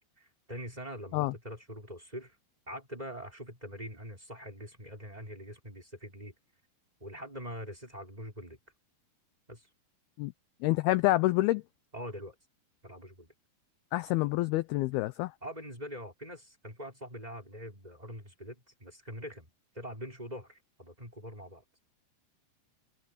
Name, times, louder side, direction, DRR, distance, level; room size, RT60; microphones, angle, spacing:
voice 1, 0.2-2.4 2.7-6.3 7.0-8.6 9.5-9.7 11.9-12.4 12.8-13.3 15.4-19.5 19.7-21.6, equal, 10° right, 5.0 m, -43 dB
voice 2, 10.6-11.6 13.9-15.3, left 18 dB, 80° left, 2.3 m, -27 dB
omnidirectional pair, 5.1 m